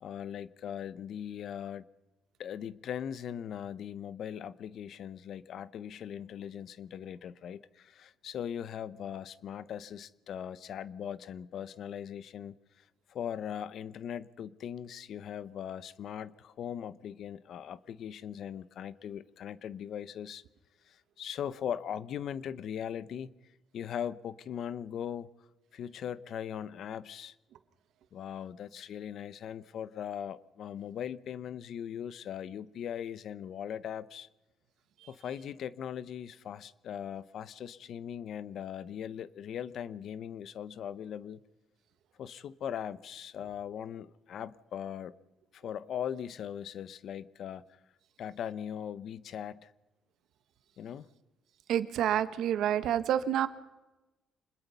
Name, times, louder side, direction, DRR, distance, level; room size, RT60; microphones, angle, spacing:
voice 1, 0.0-1.8 2.4-12.5 13.1-20.4 20.9-23.3 23.7-25.3 25.7-27.3 28.1-34.3 35.1-41.4 42.2-45.1 45.5-47.6 48.2-49.7 50.8-51.1, left 9 dB, 70° left, 0.9 m, -39 dB
voice 2, 51.7-53.5, right 10 dB, 80° right, 1.3 m, -28 dB
26.5 x 20.5 x 5.6 m
cardioid pair, 90°, 0 cm